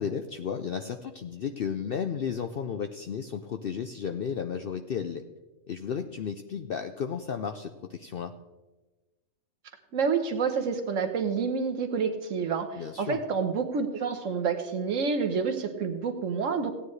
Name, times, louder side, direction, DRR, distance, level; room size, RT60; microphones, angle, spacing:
voice 1, 0.0-5.2 5.7-8.3 12.8-13.2, left 7 dB, 60° left, 7 dB, 0.6 m, -33 dB
voice 2, 9.9-16.7, right 5 dB, 65° right, 7 dB, 1.3 m, -28 dB
16.0 x 9.4 x 3.2 m, 1.2 s
omnidirectional pair, 1.4 m